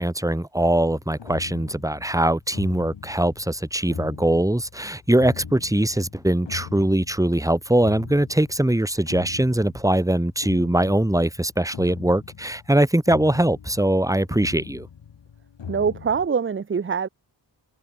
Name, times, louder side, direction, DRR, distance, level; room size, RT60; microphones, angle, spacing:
voice 1, 0.0-14.9, right 1 dB, 5° right, 2.4 m, -22 dB
sound 1, 1.0-16.3, left 7 dB, 75° left, 2.1 m, -41 dB
voice 2, 15.7-17.1, right 6 dB, 30° right, 0.6 m, -24 dB
wide cardioid pair, 160°, 44 cm